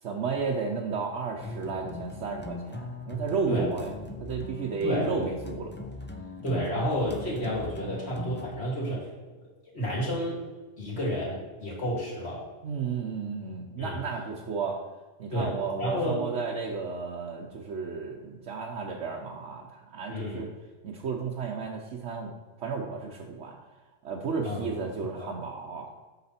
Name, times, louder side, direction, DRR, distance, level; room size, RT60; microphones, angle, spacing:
voice 1, 0.0-3.9 4.2-5.7 12.6-14.8 15.2-20.5 20.8-22.3 22.6-23.6 24.0-25.9, right 5 dB, 70° right, -1 dB, 1.2 m, -33 dB
sound 1, 1.4-8.6, left 3 dB, 15° left, 0.3 m, -40 dB
voice 2, 4.8-5.2 6.4-9.1 9.7-10.4 10.8-12.4 13.8-14.0 15.3-15.5 15.8-16.2 20.1-20.5 24.4-24.8 25.1-25.3, equal, 55° left, -5 dB, 3.1 m, -30 dB
8.2 x 6.0 x 4.3 m, 1.3 s
omnidirectional pair, 1.3 m